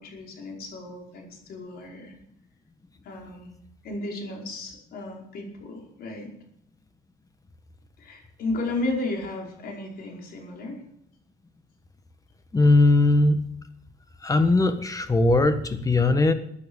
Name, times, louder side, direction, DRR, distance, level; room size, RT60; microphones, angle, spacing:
voice 1, 0.0-2.1 3.0-3.5 3.8-6.3 8.0-10.8, left 2 dB, 65° left, 0 dB, 5.2 m, -34 dB
voice 2, 12.5-13.4 14.2-16.3, left 2 dB, 20° left, 10 dB, 1.5 m, -19 dB
15.5 x 9.8 x 7.2 m, 0.74 s
cardioid pair, 110°, 17 cm